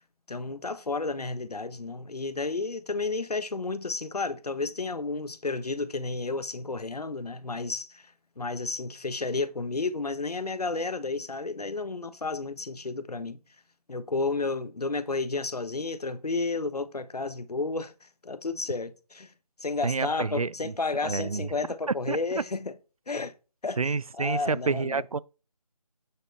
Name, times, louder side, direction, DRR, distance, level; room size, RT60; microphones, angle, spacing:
voice 1, 0.3-8.0 8.4-13.4 13.9-17.9 18.2-19.3 19.6-22.7 23.1-23.3 23.6-25.0, left 3 dB, 80° left, 1.2 m, -32 dB
voice 2, 19.8-20.7 21.0-21.5 22.1-22.2 23.8-25.2, right 4 dB, 65° right, 0.6 m, -29 dB
9.0 x 6.7 x 4.6 m
figure-of-eight pair, 175°, 20 cm